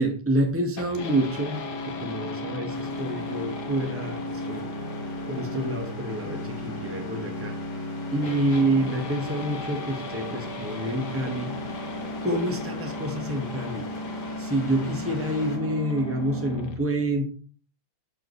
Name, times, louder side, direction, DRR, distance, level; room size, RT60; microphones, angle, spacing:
voice 1, 0.0-4.7 5.3-7.5 8.1-11.5 12.2-13.8 14.4-17.3, right 1 dB, 10° right, 3 dB, 0.9 m, -27 dB
sound 1, 0.8-16.8, left 1 dB, 55° left, 1.2 m, -34 dB
sound 2, 2.7-15.6, left 3 dB, 75° left, 5.0 m, -47 dB
13.0 x 5.2 x 4.3 m, 0.39 s
omnidirectional pair, 3.8 m